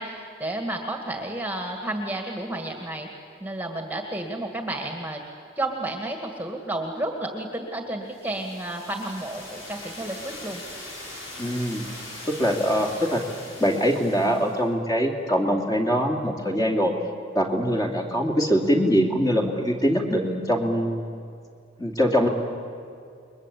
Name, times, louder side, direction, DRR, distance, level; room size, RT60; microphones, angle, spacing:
voice 1, 0.0-3.1 3.4-5.2 5.6-10.6, right 1 dB, 10° right, 3 dB, 2.0 m, -31 dB
sound 1, 8.1-14.6, left 1 dB, 85° left, 6.9 m, -41 dB
voice 2, 11.4-11.8 12.3-13.2 13.6-16.9 17.3-21.2 21.8-22.3, equal, 20° left, 1 dB, 2.7 m, -23 dB
29.5 x 22.0 x 8.5 m, 2.5 s
head